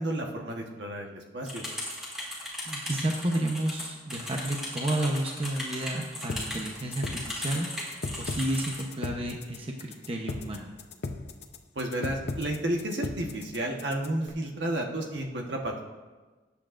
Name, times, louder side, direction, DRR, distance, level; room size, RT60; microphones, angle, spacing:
voice 1, 0.0-1.6 11.7-15.8, right 1 dB, 60° right, 1 dB, 1.3 m, -32 dB
sound 1, 1.5-8.8, left 1 dB, ahead, 2.6 m, -37 dB
voice 2, 2.6-7.7 8.2-10.7, right 1 dB, 30° right, 0 dB, 0.9 m, -31 dB
sound 2, 6.3-14.3, left 3 dB, 50° left, 0.7 m, -37 dB
19.0 x 8.5 x 2.6 m, 1.3 s
head